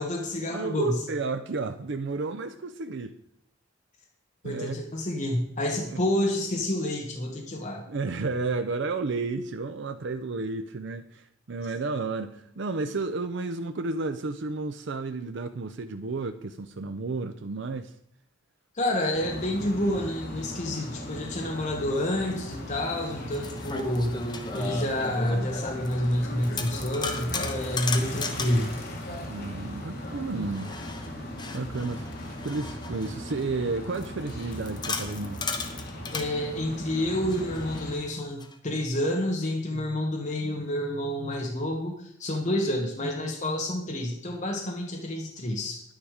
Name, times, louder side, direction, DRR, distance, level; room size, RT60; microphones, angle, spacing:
voice 1, 0.0-1.0 4.4-7.9 18.7-24.2 24.5-28.7 36.1-45.8, left 1 dB, 40° left, 0 dB, 1.4 m, -29 dB
voice 2, 0.5-3.1 4.4-4.8 5.9-6.0 7.9-17.9 29.3-30.7 31.0-31.1 31.5-32.1 32.4-35.4 39.7-40.0, right 3 dB, 65° right, 8 dB, 0.6 m, -32 dB
sound 1, 19.1-37.9, left 1 dB, 55° left, 2.5 m, -38 dB
sound 2, 22.2-22.3 23.1-26.1 26.4-28.7 30.5-33.4 33.9-36.3 37.3-38.5, left 4 dB, 25° left, 1.1 m, -36 dB
10.5 x 9.6 x 4.9 m, 0.73 s
head